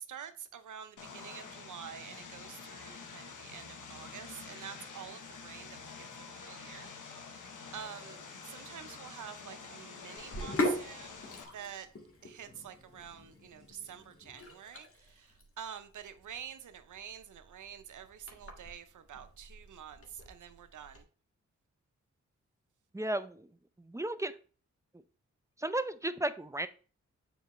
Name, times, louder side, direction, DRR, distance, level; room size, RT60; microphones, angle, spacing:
voice 1, 0.0-6.1 6.4-7.5 7.7-11.2 11.5-11.9 12.2-21.0, right 8 dB, 80° right, 0.7 m, -48 dB
Vehicle, 1.0-11.4, left 5 dB, 85° left, 1.0 m, -48 dB
Sink (filling or washing), 10.2-21.0, left 1 dB, 45° left, 1.9 m, -41 dB
voice 2, 22.9-23.5 23.8-24.3 25.6-26.7, right 1 dB, 10° right, 0.5 m, -34 dB
7.1 x 4.5 x 3.1 m
cardioid pair, 45°, 30 cm